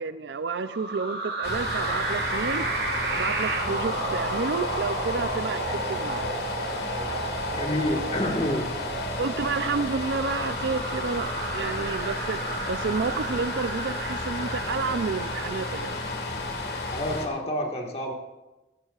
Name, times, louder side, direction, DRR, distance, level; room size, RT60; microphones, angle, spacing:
voice 1, 0.0-2.7 3.1-6.3 9.2-12.4 12.7-16.0, right 4 dB, 80° right, 13 dB, 0.5 m, -30 dB
sound 1, 0.6-16.3, right 3 dB, 60° right, 1.8 m, -33 dB
sound 2, 1.4-17.3, left 2 dB, 65° left, 1.8 m, -33 dB
voice 2, 7.5-8.7 16.9-18.1, left 1 dB, 35° left, 1 dB, 1.7 m, -28 dB
16.5 x 15.0 x 2.5 m, 1.1 s
head